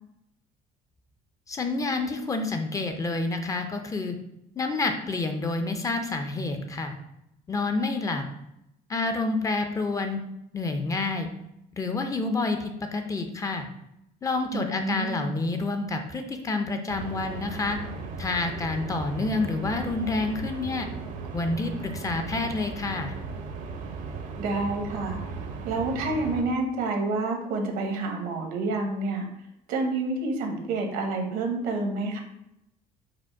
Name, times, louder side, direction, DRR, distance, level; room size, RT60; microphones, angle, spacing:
voice 1, 1.5-4.2 4.6-6.9 7.5-8.2 8.9-10.2 10.5-11.3 11.7-13.7 14.2-17.8 18.2-20.9 21.3-23.2, left 3 dB, 20° left, 5 dB, 0.5 m, -28 dB
voice 2, 14.5-15.3 24.4-25.2 25.6-29.3 29.7-32.2, right 2 dB, 75° right, 3 dB, 0.9 m, -28 dB
sound 1, 16.9-26.4, right 4 dB, 60° right, 0.6 m, -37 dB
4.9 x 2.1 x 4.5 m, 0.82 s
cardioid pair, 135°, 15 cm